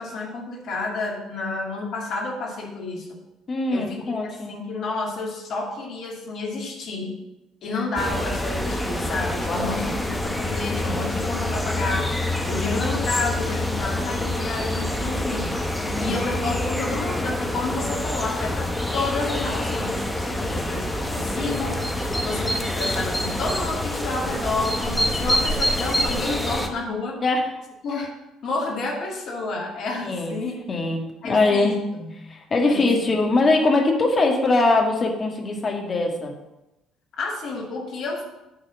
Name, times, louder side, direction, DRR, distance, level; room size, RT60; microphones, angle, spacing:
voice 1, 0.0-3.1 3.7-7.2 7.6-12.1 12.5-15.6 16.0-18.7 18.9-21.8 22.2-27.2 27.8-28.1 28.4-30.6 31.2-32.1 32.7-32.9 37.1-38.2, left 3 dB, 60° left, -1 dB, 2.3 m, -30 dB
voice 2, 3.5-4.5 9.4-9.8 15.8-16.2 20.4-20.7 27.2-27.5 30.0-30.4 30.7-31.8 32.1-36.3, left 2 dB, 40° left, 2 dB, 1.9 m, -22 dB
sound 1, 8.0-26.7, left 1 dB, 5° left, 1.2 m, -26 dB
8.8 x 4.1 x 7.2 m, 0.96 s
hypercardioid pair, 55°, 0 cm